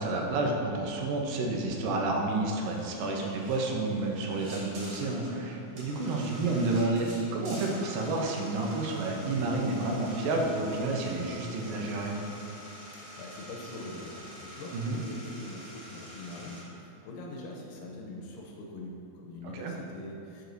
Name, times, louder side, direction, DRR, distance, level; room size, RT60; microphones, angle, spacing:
voice 1, 0.0-12.2 14.7-15.0 19.5-19.7, right 2 dB, 75° right, 0 dB, 2.3 m, -30 dB
sound 1, 2.6-16.6, right 1 dB, 55° right, 2.4 m, -46 dB
voice 2, 13.1-20.4, left 1 dB, 75° left, -1 dB, 2.2 m, -43 dB
11.5 x 4.7 x 2.7 m, 2.9 s
omnidirectional pair, 4.3 m